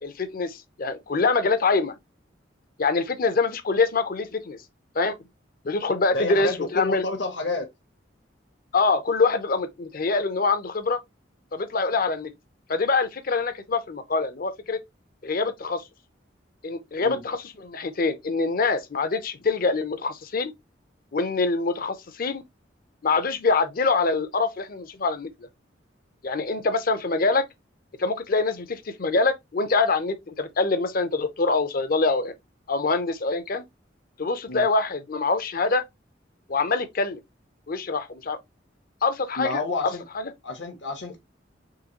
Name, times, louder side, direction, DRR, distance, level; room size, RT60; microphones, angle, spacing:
voice 1, 0.0-1.9 2.8-4.6 4.9-5.1 5.6-7.0 8.7-11.0 11.5-12.3 12.7-14.8 15.2-15.8 16.6-20.5 21.1-22.4 23.0-25.3 26.2-27.4 28.0-32.3 32.7-33.6 34.2-35.8 36.5-37.2 37.7-38.4 39.0-40.2, left 3 dB, 50° left, 0.6 m, -25 dB
voice 2, 6.1-7.7 17.0-17.2 34.5-34.7 39.4-40.0 40.4-41.2, left 3 dB, 70° left, 1.0 m, -29 dB
3.8 x 3.1 x 2.8 m
head